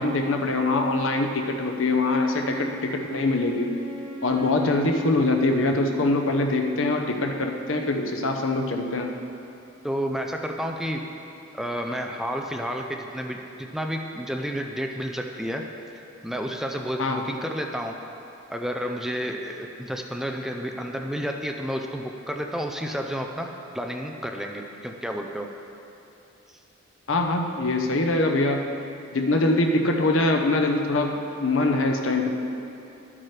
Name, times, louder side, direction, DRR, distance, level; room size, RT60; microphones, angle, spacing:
voice 1, 0.0-3.7 4.2-9.2 17.0-17.2 27.1-28.6 29.1-31.1 31.4-32.3, left 2 dB, 70° left, 3 dB, 0.8 m, -23 dB
Wind instrument woodwind instrument, 2.3-6.7, right 1 dB, 25° right, 1.1 m, -40 dB
voice 2, 9.8-11.1 11.5-15.7 16.2-18.0 18.5-25.5, equal, ahead, 2 dB, 0.4 m, -31 dB
12.0 x 8.6 x 3.3 m, 2.9 s
head